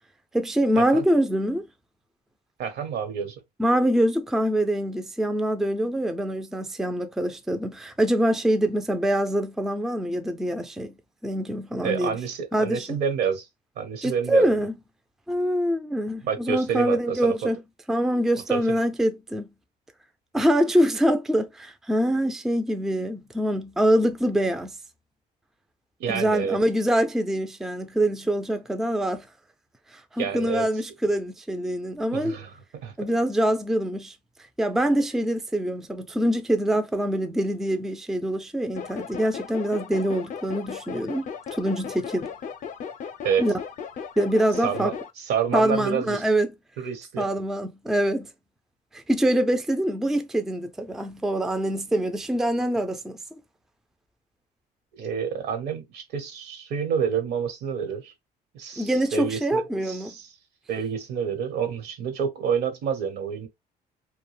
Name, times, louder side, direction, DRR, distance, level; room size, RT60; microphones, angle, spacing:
voice 1, 0.3-1.6 3.6-10.9 11.2-12.1 12.5-13.0 14.0-14.7 15.3-17.6 17.9-19.5 20.3-24.7 26.1-29.3 29.9-32.4 33.0-34.1 34.6-42.3 43.4-43.6 44.2-44.9 45.5-46.5 47.2-48.3 48.9-53.2 58.8-60.1, right 1 dB, ahead, 0.3 m, -24 dB
voice 2, 2.6-3.3 11.8-13.5 13.8-14.5 16.2-17.3 18.5-18.8 26.0-26.6 30.2-30.7 32.0-32.5 32.8-32.9 43.2-43.5 44.6-46.2 46.8-47.3 54.9-58.1 58.5-60.2 60.7-63.5, right 7 dB, 75° right, 1.0 m, -28 dB
sound 1, 38.8-45.1, left 7 dB, 50° left, 0.5 m, -36 dB
2.4 x 2.1 x 3.1 m
cardioid pair, 110°, 17 cm